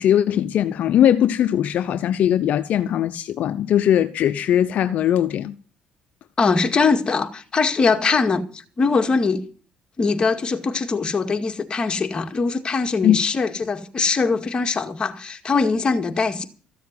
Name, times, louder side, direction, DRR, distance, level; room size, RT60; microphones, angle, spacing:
voice 1, 0.0-5.5 13.0-13.2, left 10 dB, 65° left, 0.7 m, -20 dB
voice 2, 6.4-9.4 10.0-16.5, left 4 dB, 35° left, 2.1 m, -22 dB
14.5 x 7.2 x 9.6 m
cardioid pair, 90°, 3 cm